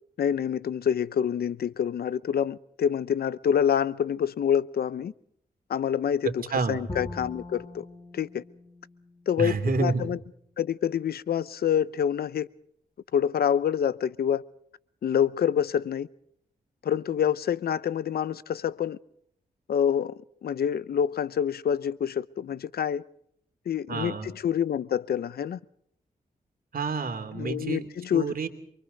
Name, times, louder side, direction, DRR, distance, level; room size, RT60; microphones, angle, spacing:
voice 1, 0.2-5.1 5.7-6.4 6.7-7.9 8.1-8.4 9.3-10.2 10.6-12.5 13.1-14.4 15.0-16.1 16.8-19.0 19.7-23.0 23.7-25.6 27.3-28.3, left 8 dB, 80° left, 0.8 m, -27 dB
Bowed string instrument, 6.9-10.0, left 2 dB, 30° left, 6.0 m, -42 dB
voice 2, 9.4-10.1 23.9-24.3 26.7-28.5, right 4 dB, 70° right, 3.0 m, -29 dB
28.5 x 24.0 x 4.0 m
cardioid pair, 75°, 16 cm